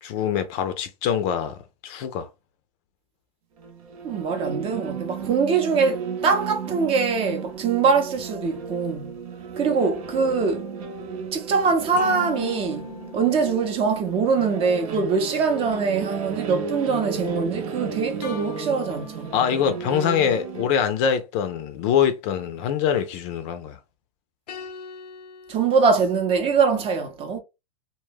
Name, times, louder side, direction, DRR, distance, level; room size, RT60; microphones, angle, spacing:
voice 1, 0.0-1.6 1.8-2.3 19.3-23.8, left 8 dB, 45° left, 0.5 m, -24 dB
sound 1, 3.6-20.7, right 6 dB, 65° right, 0.7 m, -34 dB
voice 2, 4.0-9.2 9.5-10.7 11.3-19.3 25.5-27.4, right 5 dB, 30° right, 0.6 m, -23 dB
sound 2, 11.9-14.5 18.2-20.0 24.5-25.9, left 6 dB, 90° left, 0.6 m, -40 dB
2.2 x 2.1 x 3.3 m
hypercardioid pair, 125°, 20 cm